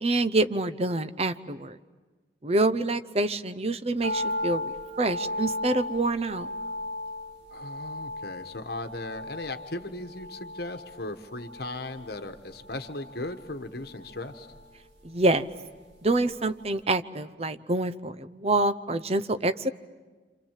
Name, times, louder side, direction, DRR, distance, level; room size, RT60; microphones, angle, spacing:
voice 1, 0.0-1.8 2.4-4.6 5.0-6.5 15.0-15.5 16.0-19.7, right 2 dB, 35° right, 11 dB, 0.8 m, -26 dB
sound 1, 4.0-16.3 16.6-16.7, left 1 dB, 80° right, 3.2 m, -37 dB
voice 2, 7.5-14.5, left 2 dB, 60° left, 7 dB, 1.3 m, -37 dB
28.0 x 27.5 x 7.5 m, 1.3 s
head